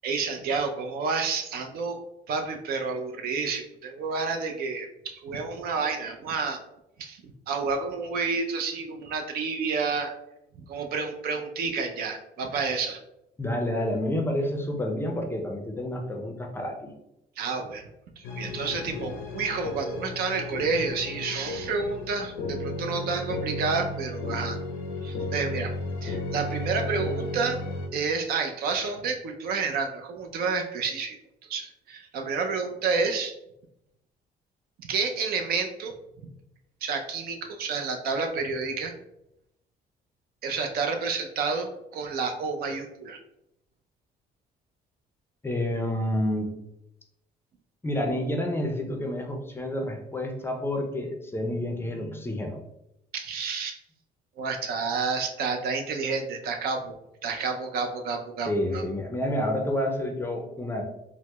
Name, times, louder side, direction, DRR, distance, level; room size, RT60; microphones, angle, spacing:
voice 1, 0.0-2.0 2.3-6.6 7.0-10.1 10.7-13.0 17.4-17.8 18.2-24.6 25.0-25.7 26.0-27.6 27.9-31.2 31.4-33.4 34.8-35.9 36.8-38.9 40.4-43.2 53.1-53.8 54.4-56.9 57.2-58.9, right 4 dB, 65° right, 5 dB, 0.5 m, -30 dB
voice 2, 13.4-16.9 45.4-46.5 47.8-52.6 58.5-60.8, left 1 dB, 15° left, 3 dB, 0.4 m, -29 dB
sound 1, 18.2-27.9, left 2 dB, 80° left, 0.6 m, -34 dB
4.5 x 2.0 x 2.2 m, 0.84 s
cardioid pair, 110°, 17 cm